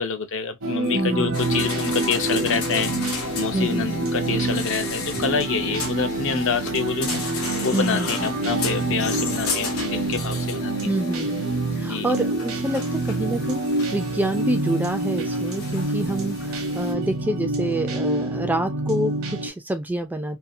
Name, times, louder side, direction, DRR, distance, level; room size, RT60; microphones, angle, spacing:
voice 1, 0.0-2.9 3.4-10.9 11.9-12.1, left 6 dB, 60° left, 0.5 m, -27 dB
sound 1, 0.6-19.5, right 2 dB, 65° right, 0.8 m, -27 dB
voice 2, 0.9-1.4 3.5-4.1 7.7-8.3 10.8-11.5 11.7-13.7 13.9-20.4, right 1 dB, 10° right, 0.3 m, -27 dB
sound 2, 1.3-16.9, left 4 dB, 85° left, 0.9 m, -34 dB
2.7 x 2.3 x 2.5 m
head